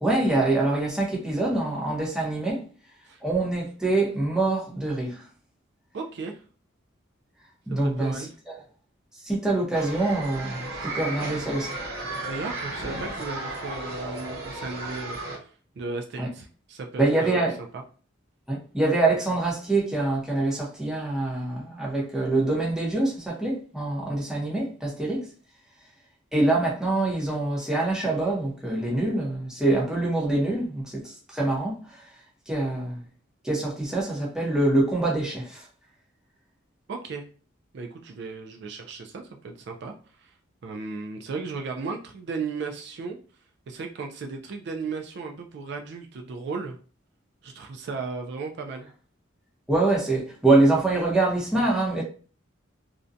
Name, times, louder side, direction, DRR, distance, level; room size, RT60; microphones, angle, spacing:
voice 1, 0.0-2.7 3.2-5.2 7.7-8.6 9.2-11.7 16.2-16.3 17.0-17.6 18.5-25.3 26.3-32.0 32.5-33.0 33.4-35.6 49.7-52.0, right 2 dB, 5° right, 0.7 m, -25 dB
voice 2, 5.9-6.4 7.7-8.3 12.3-17.5 17.7-17.8 36.9-37.2 37.7-40.3 40.6-43.2 43.7-46.8 47.4-48.9, right 4 dB, 55° right, 0.3 m, -35 dB
sound 1, 9.7-15.4, right 2 dB, 85° right, 1.0 m, -34 dB
2.5 x 2.1 x 2.5 m
head